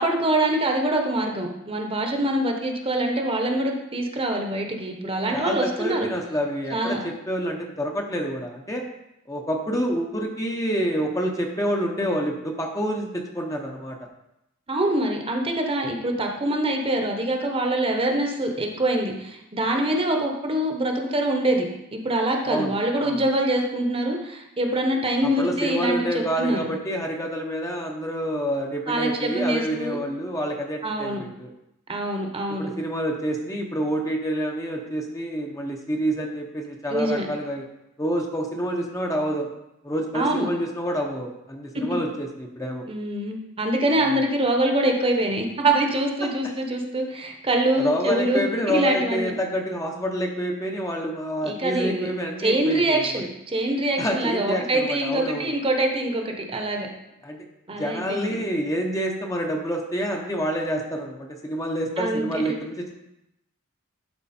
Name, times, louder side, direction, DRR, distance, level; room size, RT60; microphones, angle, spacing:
voice 1, 0.0-6.1 6.7-7.0 14.7-21.7 21.9-26.7 28.9-30.0 30.8-31.2 31.9-32.7 36.9-37.3 40.1-40.5 42.9-49.4 51.4-52.1 52.4-56.9 57.7-58.3 62.0-62.5, right 1 dB, 25° right, 2 dB, 1.0 m, -24 dB
voice 2, 5.3-8.8 9.3-14.0 22.5-22.7 23.0-23.2 25.4-31.5 32.6-37.6 38.0-39.5 39.8-42.9 44.0-44.2 46.2-46.5 47.8-53.1 54.0-55.5 57.2-57.5 57.8-62.9, equal, 15° left, 1 dB, 0.8 m, -28 dB
11.5 x 4.3 x 4.3 m, 0.87 s
head